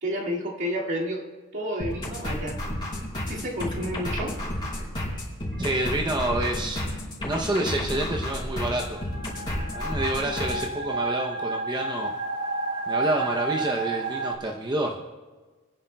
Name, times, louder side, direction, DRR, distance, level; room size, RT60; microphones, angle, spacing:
voice 1, 0.0-1.3 1.5-2.6 3.3-4.4, equal, 55° right, -3 dB, 2.2 m, -30 dB
sound 1, 1.8-10.7, left 1 dB, 20° left, 3.9 m, -31 dB
voice 2, 5.6-6.8 7.2-9.0 9.7-12.1 12.9-15.0, right 1 dB, 20° right, 0 dB, 0.7 m, -28 dB
sound 2, 8.6-14.4, right 3 dB, 85° right, 1.6 m, -31 dB
28.0 x 10.0 x 2.3 m, 1.3 s
head